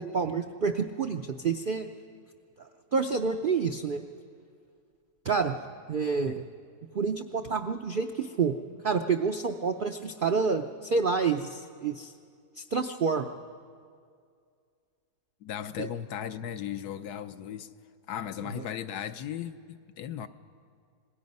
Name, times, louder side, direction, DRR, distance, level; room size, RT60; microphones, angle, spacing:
voice 1, 0.0-1.9 2.9-4.0 5.2-5.6 5.9-6.4 6.9-8.6 8.8-12.1 12.6-13.3 15.8-15.9, right 5 dB, 70° right, 6 dB, 0.5 m, -28 dB
voice 2, 15.4-17.7 18.1-20.3, left 9 dB, 80° left, 10 dB, 1.3 m, -36 dB
26.0 x 20.0 x 5.4 m, 2.2 s
omnidirectional pair, 1.7 m